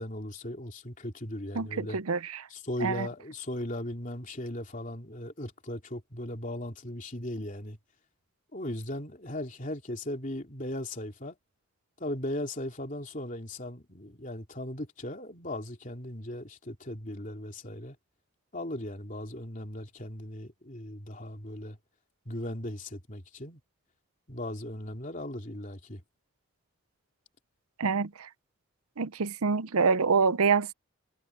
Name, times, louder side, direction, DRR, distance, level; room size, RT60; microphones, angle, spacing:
voice 1, 0.0-2.0 2.5-7.8 8.5-11.4 12.0-18.0 18.5-21.8 22.3-23.6 24.3-26.0, left 1 dB, 35° left, 3.3 m, -37 dB
voice 2, 1.6-2.4 2.8-3.1 27.8-28.3 29.0-30.7, right 5 dB, 85° right, 0.7 m, -26 dB
head